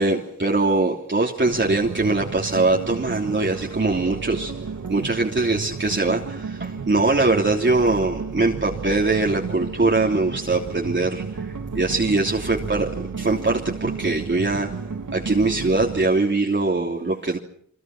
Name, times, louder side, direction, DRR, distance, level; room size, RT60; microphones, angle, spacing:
voice 1, 0.0-4.5 4.9-14.7 15.1-17.4, right 3 dB, 40° right, -1 dB, 3.2 m, -22 dB
sound 1, 1.4-16.1, right 5 dB, 90° right, 2.6 m, -32 dB
29.0 x 24.5 x 6.1 m, 0.65 s
wide cardioid pair, 100°, 30 cm